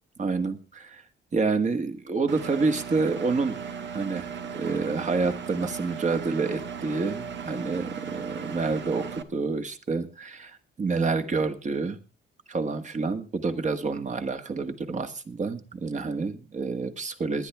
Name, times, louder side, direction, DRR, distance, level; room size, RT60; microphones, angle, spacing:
voice 1, 0.2-1.0 1.3-3.6 3.9-4.3 4.5-12.0 12.5-17.5, right 4 dB, 35° right, 8 dB, 1.8 m, -28 dB
Engine, 2.3-9.2, right 6 dB, 65° right, 1.4 m, -36 dB
19.5 x 10.5 x 3.5 m, 0.32 s
cardioid pair, 90°, 20 cm